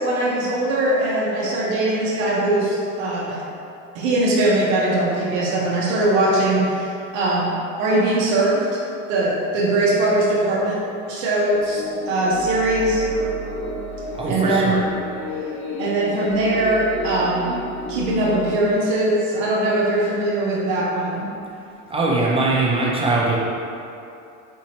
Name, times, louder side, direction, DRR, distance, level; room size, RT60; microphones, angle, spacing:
voice 1, 0.0-3.4 3.9-8.8 9.1-10.8 11.1-13.0 14.3-14.8 15.8-17.6 17.9-21.3, right 1 dB, 75° right, -6 dB, 0.9 m, -21 dB
sound 1, 11.5-18.6, left 1 dB, 55° left, 1.4 m, -32 dB
voice 2, 14.1-14.8 21.9-23.4, right 2 dB, 15° right, -5 dB, 0.5 m, -21 dB
4.4 x 2.7 x 2.9 m, 2.6 s
supercardioid pair, 100°, 39 cm